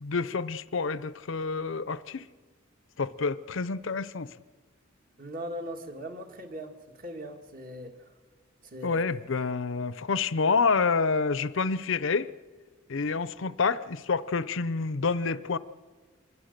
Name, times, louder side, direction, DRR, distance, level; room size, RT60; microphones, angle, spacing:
voice 1, 0.0-2.2 3.0-4.3 8.8-12.3 12.9-15.6, left 4 dB, 65° left, 16 dB, 0.6 m, -28 dB
voice 2, 5.2-7.9 8.7-9.0, equal, 40° right, 4 dB, 2.0 m, -39 dB
25.5 x 20.5 x 6.7 m, 1.5 s
head